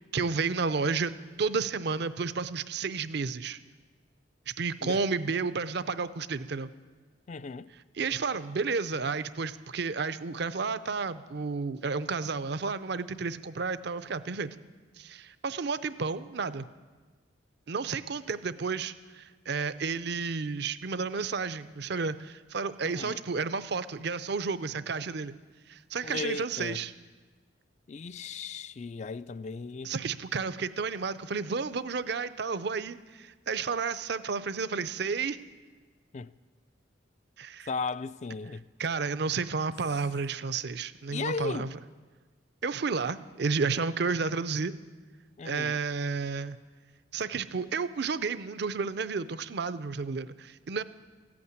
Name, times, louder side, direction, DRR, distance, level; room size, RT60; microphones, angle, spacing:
voice 1, 0.1-1.1 1.4-3.6 4.5-6.7 8.0-14.5 15.0-16.6 17.7-25.3 25.7-26.9 29.8-35.4 37.4-37.7 38.8-41.7 42.6-44.7 45.4-46.6 47.1-50.8, right 4 dB, 60° right, 0.6 m, -31 dB
voice 2, 7.3-7.7 22.8-23.2 26.0-26.9 27.9-29.9 36.1-36.3 37.7-38.7 41.1-41.7 45.4-45.8, left 4 dB, 40° left, 0.3 m, -36 dB
15.0 x 8.6 x 9.5 m
head